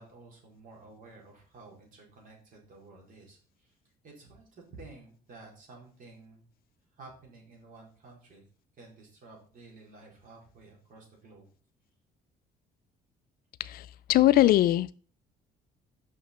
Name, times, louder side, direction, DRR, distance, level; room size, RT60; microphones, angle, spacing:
voice 1, 0.0-3.7 4.0-6.5 7.0-8.4 8.8-11.5, right 3 dB, 55° right, 4.1 m, -52 dB
voice 2, 13.6-14.9, left 14 dB, 60° left, 0.4 m, -22 dB
6.5 x 5.9 x 5.4 m
cardioid pair, 110°, 17 cm